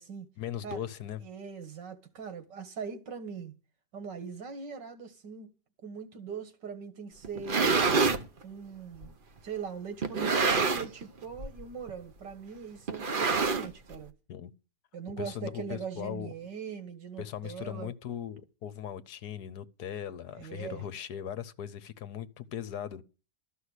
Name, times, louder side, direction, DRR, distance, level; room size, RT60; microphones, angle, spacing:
voice 1, 0.4-1.2 14.3-14.5 15.2-16.3 17.2-23.0, left 9 dB, 65° left, 1.4 m, -39 dB
voice 2, 1.2-3.5 3.9-5.5 5.8-7.8 8.4-9.1 9.4-14.1 14.9-17.9 20.4-20.8, right 6 dB, 85° right, 2.4 m, -41 dB
sound 1, 7.2-8.3 9.0-9.1 10.0-11.0 11.3-11.6 11.9-12.0 12.9-14.0, right 4 dB, 40° right, 0.9 m, -26 dB
13.5 x 5.7 x 8.1 m
omnidirectional pair, 1.9 m